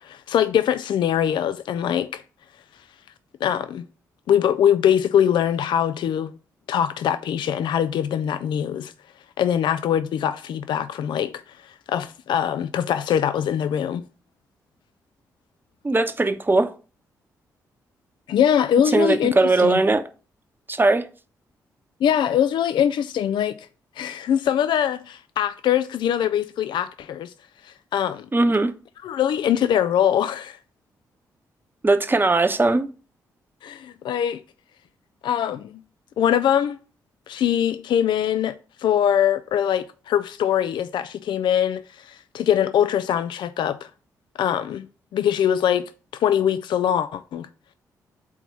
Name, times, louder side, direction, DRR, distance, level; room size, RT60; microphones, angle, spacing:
voice 1, 0.0-2.2 3.4-3.8 4.3-6.4 6.7-8.9 9.4-11.3 11.6-14.0 18.3-19.8 22.0-23.6 24.0-27.3 27.6-28.3 29.0-30.6 33.6-34.4 35.2-35.7 36.2-36.8 37.3-43.9 44.4-44.9 45.1-47.5, left 9 dB, 65° left, 0.4 m, -22 dB
voice 2, 15.8-16.7 18.9-20.0 20.7-21.0 28.3-28.7 31.8-32.9, right 2 dB, 25° right, 0.8 m, -19 dB
4.5 x 4.0 x 5.7 m
hypercardioid pair, 40°, 9 cm